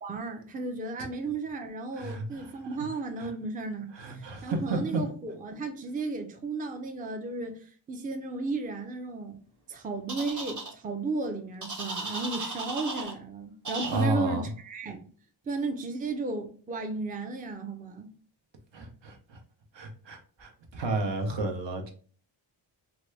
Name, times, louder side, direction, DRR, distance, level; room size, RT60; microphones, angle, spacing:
voice 1, 0.0-9.4 9.7-15.1 15.5-18.1, right 3 dB, 20° right, 0.4 m, -34 dB
voice 2, 2.0-2.5 3.2-3.3 3.9-5.0 13.9-14.5 18.7-19.4 19.7-21.9, right 2 dB, 65° right, 0.8 m, -32 dB
sound 1, 10.1-10.7 11.6-13.1 13.6-14.0, right 3 dB, 40° right, 0.9 m, -35 dB
2.9 x 2.3 x 3.1 m
cardioid pair, 60°, 48 cm